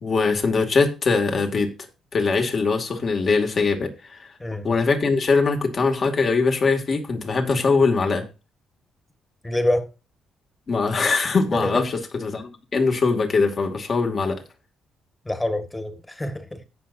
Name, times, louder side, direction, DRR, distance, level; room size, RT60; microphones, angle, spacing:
voice 1, 0.0-1.7 2.1-4.3 4.6-8.3 10.7-14.4, left 4 dB, 45° left, 2.3 m, -22 dB
voice 2, 4.4-4.8 9.4-9.9 11.5-11.9 15.3-16.6, left 1 dB, 15° left, 1.8 m, -26 dB
17.0 x 5.8 x 2.7 m
cardioid pair, 90°, 0 cm